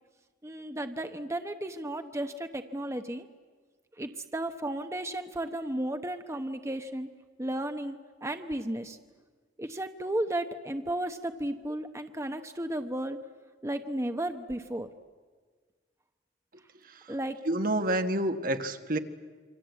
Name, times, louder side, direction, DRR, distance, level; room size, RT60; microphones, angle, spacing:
voice 1, 0.4-3.2 4.0-7.1 7.4-9.0 9.6-13.2 13.6-14.9 17.1-17.4, right 1 dB, 15° right, 7 dB, 0.9 m, -34 dB
voice 2, 16.8-17.1 17.4-19.0, right 1 dB, 55° right, 7 dB, 1.5 m, -29 dB
27.0 x 25.0 x 8.3 m, 1.5 s
head